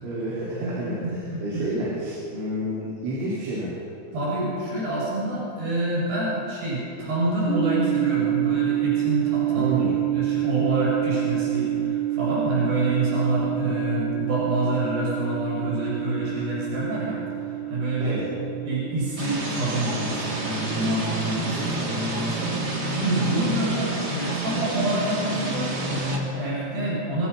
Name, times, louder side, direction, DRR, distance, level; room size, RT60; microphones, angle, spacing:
voice 1, 0.0-3.7 9.5-10.0 18.0-18.3 21.4-21.7, right 1 dB, 85° right, -6 dB, 6.8 m, -30 dB
voice 2, 0.6-1.6 4.1-9.9 10.1-18.2 18.6-27.3, right 1 dB, 60° right, -6 dB, 9.7 m, -27 dB
sound 1, 7.5-21.0, right 14 dB, 55° left, 0.9 m, -27 dB
sound 2, 19.2-26.2, right 2 dB, 25° right, 3.0 m, -29 dB
27.0 x 25.5 x 5.8 m, 2.7 s
omnidirectional pair, 5.5 m